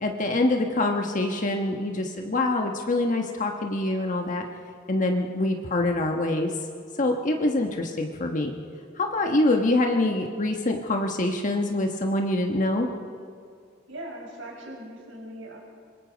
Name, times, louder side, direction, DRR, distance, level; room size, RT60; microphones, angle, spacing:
voice 1, 0.0-4.4 4.9-6.5 7.0-8.5 9.0-12.9, left 2 dB, 40° left, 3 dB, 1.3 m, -25 dB
voice 2, 13.9-15.6, right 1 dB, 75° right, -1 dB, 6.0 m, -40 dB
25.5 x 22.0 x 5.2 m, 2.2 s
head